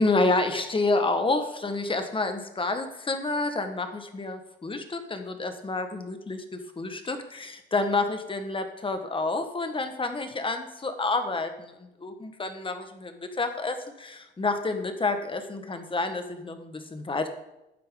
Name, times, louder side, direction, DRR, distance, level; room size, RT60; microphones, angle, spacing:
voice 1, 0.0-17.3, left 3 dB, 25° left, 7 dB, 1.5 m, -29 dB
12.0 x 8.7 x 3.9 m, 0.92 s
cardioid pair, 90°, 20 cm